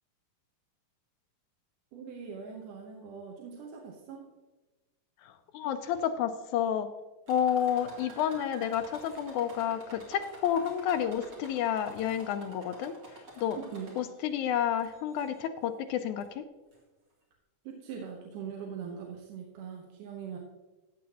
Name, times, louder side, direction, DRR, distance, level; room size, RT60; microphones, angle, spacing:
voice 1, 1.9-4.3 13.6-14.0 17.6-20.4, right 7 dB, 75° right, 0 dB, 2.5 m, -42 dB
voice 2, 5.2-6.9 7.3-13.6 14.0-16.4, left 9 dB, 80° left, 8 dB, 1.8 m, -30 dB
sound 1, 7.3-14.3 14.8-15.4 16.2-16.3 16.7-16.8, right 2 dB, 35° right, 2.4 m, -50 dB
14.5 x 8.4 x 2.8 m, 1.2 s
omnidirectional pair, 3.8 m